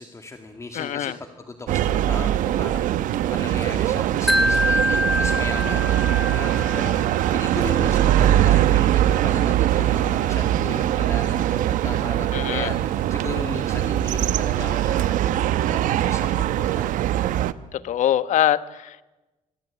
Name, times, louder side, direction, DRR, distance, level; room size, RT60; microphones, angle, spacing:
voice 1, 0.0-17.2, left 3 dB, 20° left, 6 dB, 2.2 m, -36 dB
voice 2, 0.7-1.2 12.3-12.7 17.7-19.0, left 11 dB, 70° left, 15 dB, 1.1 m, -23 dB
sound 1, 1.7-17.5, right 12 dB, 90° right, 1.0 m, -22 dB
Wind chime, 4.3-7.4, equal, ahead, 1.4 m, -25 dB
25.0 x 23.5 x 8.7 m, 1.1 s
cardioid pair, 130°, 13 cm